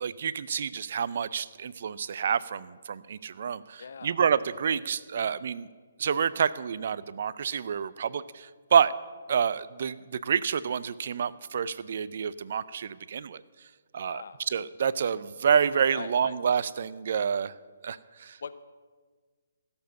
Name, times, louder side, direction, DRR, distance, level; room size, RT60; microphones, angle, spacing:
voice 1, 0.0-5.7 6.0-8.9 9.3-13.4 13.9-17.5 17.8-18.4, right 7 dB, 55° right, 17 dB, 0.5 m, -28 dB
voice 2, 3.8-4.2 14.0-14.4 15.9-16.4 18.4-18.6, left 5 dB, 60° left, 12 dB, 0.7 m, -41 dB
16.0 x 7.1 x 6.6 m, 1.5 s
figure-of-eight pair, 140°, 0 cm